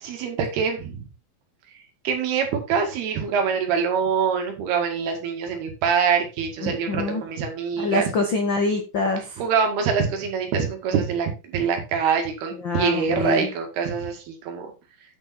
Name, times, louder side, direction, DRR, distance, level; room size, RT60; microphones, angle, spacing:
voice 1, 0.0-1.0 2.1-8.1 9.4-14.7, right 6 dB, 85° right, 4 dB, 3.9 m, -24 dB
voice 2, 6.6-7.2 7.8-9.4 12.6-13.5, left 3 dB, 75° left, 4 dB, 1.0 m, -25 dB
9.9 x 6.4 x 4.3 m, 0.29 s
omnidirectional pair, 4.4 m